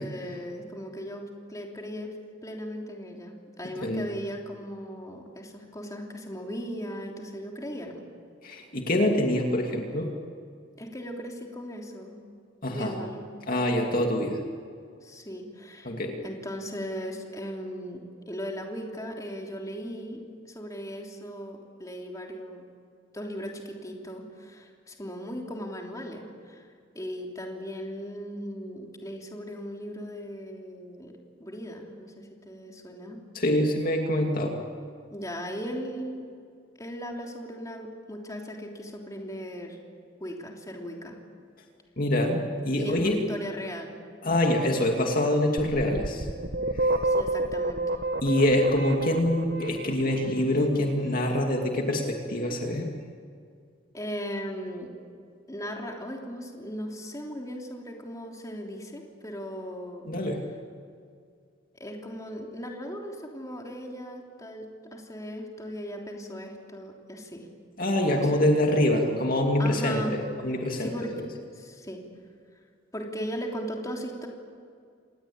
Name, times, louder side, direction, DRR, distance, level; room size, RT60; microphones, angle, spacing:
voice 1, 0.0-2.1 2.4-8.0 10.8-12.2 12.7-13.3 15.0-15.9 16.2-22.6 23.1-26.7 26.9-31.1 31.4-33.2 35.1-36.3 36.8-39.8 40.2-41.2 42.7-44.0 47.0-48.0 53.9-54.9 55.5-60.1 61.8-67.5 68.1-68.4 69.6-70.2 70.4-71.1 71.5-72.0 72.9-74.3, equal, 15° left, 0 dB, 3.3 m, -37 dB
voice 2, 8.4-10.1 12.6-12.9 13.5-14.4 15.8-16.2 33.3-34.6 42.0-43.2 44.2-46.3 46.7-47.0 48.2-52.9 60.1-60.4 67.8-70.9, left 1 dB, 45° left, 2 dB, 2.5 m, -25 dB
sound 1, 45.6-50.4, right 2 dB, 60° right, 1.3 m, -29 dB
28.0 x 20.0 x 8.8 m, 2.2 s
head